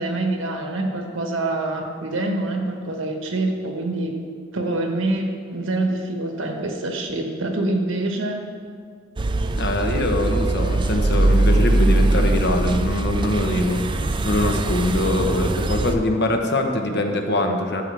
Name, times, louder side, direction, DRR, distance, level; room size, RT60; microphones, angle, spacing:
voice 1, 0.0-4.2 4.5-8.5, right 2 dB, 80° right, 3 dB, 1.3 m, -25 dB
sound 1, 9.2-15.9, right 2 dB, 25° right, 0.4 m, -21 dB
voice 2, 9.5-13.8 14.2-17.8, left 1 dB, 60° left, 4 dB, 1.0 m, -23 dB
13.0 x 7.6 x 3.4 m, 2.1 s
head